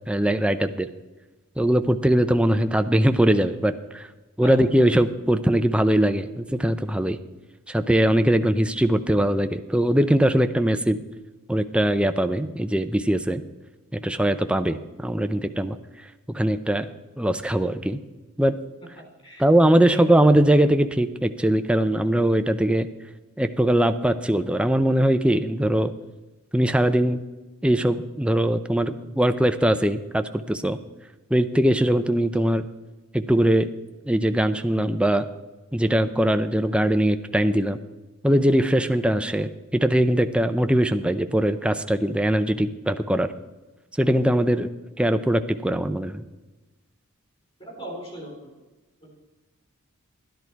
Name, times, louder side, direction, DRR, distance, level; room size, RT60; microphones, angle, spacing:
voice 1, 0.1-0.9 1.6-4.1 4.4-7.2 7.7-11.0 11.5-13.4 13.9-15.8 16.3-16.9 17.2-18.0 18.4-18.6 19.4-22.9 23.4-25.9 26.5-27.2 27.6-30.8 31.3-32.6 33.1-33.7 34.1-35.2 35.7-37.8 38.2-43.3 44.0-44.7 45.0-46.2, right 1 dB, 5° right, 9 dB, 0.5 m, -21 dB
voice 2, 47.6-48.5 49.0-49.1, right 1 dB, 25° left, 0 dB, 3.7 m, -37 dB
12.5 x 10.5 x 4.6 m, 1.1 s
head